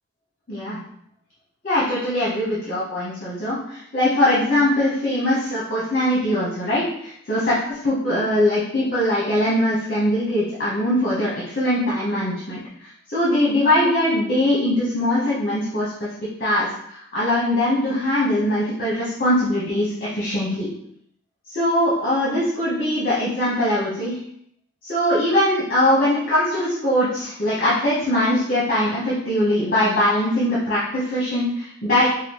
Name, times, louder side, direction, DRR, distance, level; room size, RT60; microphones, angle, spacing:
voice 1, 0.5-0.8 1.6-16.1 16.4-20.7 21.5-24.2 24.8-32.1, left 1 dB, 40° left, -8 dB, 0.9 m, -21 dB
4.7 x 2.0 x 3.0 m, 0.72 s
head